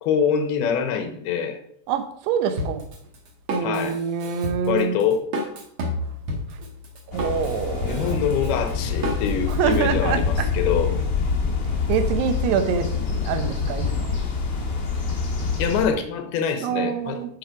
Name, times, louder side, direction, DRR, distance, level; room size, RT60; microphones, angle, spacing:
voice 1, 0.0-1.6 3.6-4.0 4.7-5.3 7.9-11.0 15.6-17.4, left 7 dB, 75° left, 2.8 m, -25 dB
voice 2, 1.9-2.9 3.5-4.9 7.1-8.2 9.5-10.5 11.9-14.1 16.6-17.3, right 7 dB, 80° right, 2.9 m, -25 dB
Drum kit, 2.6-9.8, equal, 50° right, 1.5 m, -31 dB
sound 1, 7.1-15.9, left 5 dB, 50° left, 1.2 m, -26 dB
9.3 x 5.8 x 5.0 m
omnidirectional pair, 4.8 m